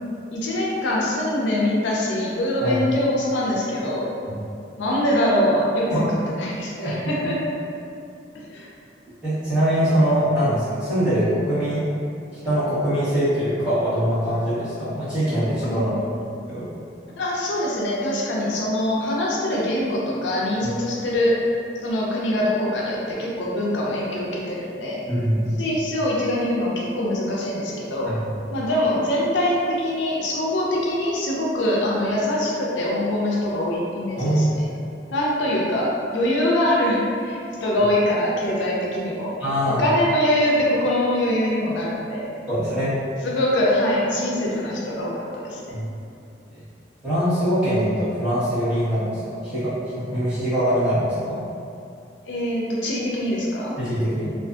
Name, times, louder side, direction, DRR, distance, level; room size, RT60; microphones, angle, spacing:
voice 1, 0.3-4.1 4.8-7.5 8.5-8.7 15.6-16.0 17.2-21.5 21.8-25.0 25.6-28.1 28.5-34.7 35.1-39.4 39.7-42.3 43.2-45.8 52.3-53.8, left 1 dB, 75° left, -4 dB, 0.4 m, -23 dB
voice 2, 9.2-11.9 12.4-16.1 16.5-16.7 20.6-20.7 25.1-25.6 34.2-34.7 39.4-39.8 42.5-42.9 45.7-45.8 46.5-46.6 47.0-51.4 53.8-54.3, equal, 5° right, -16 dB, 1.0 m, -23 dB
2.5 x 2.4 x 2.3 m, 2.5 s
head